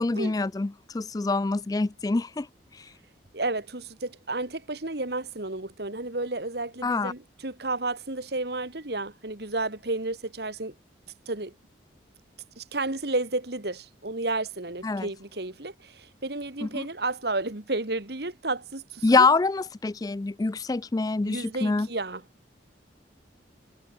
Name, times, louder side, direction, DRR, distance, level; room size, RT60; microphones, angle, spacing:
voice 1, 0.0-2.5 6.8-7.1 14.8-15.1 16.6-16.9 19.0-21.9, left 3 dB, 20° left, 0.3 m, -25 dB
voice 2, 3.3-10.7 11.3-11.5 12.6-19.3 21.2-22.2, right 2 dB, 60° right, 2.0 m, -32 dB
head